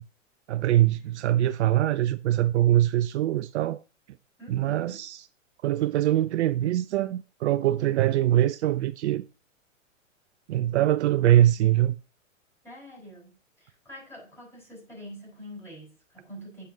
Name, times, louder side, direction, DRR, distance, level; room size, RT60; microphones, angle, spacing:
voice 1, 0.5-3.8 4.5-5.2 5.6-9.2 10.5-12.0, right 13 dB, 60° right, 0.5 m, -23 dB
voice 2, 4.4-5.1 12.6-16.7, equal, 5° left, 4.0 m, -45 dB
8.6 x 5.6 x 2.7 m
hypercardioid pair, 115°, 39 cm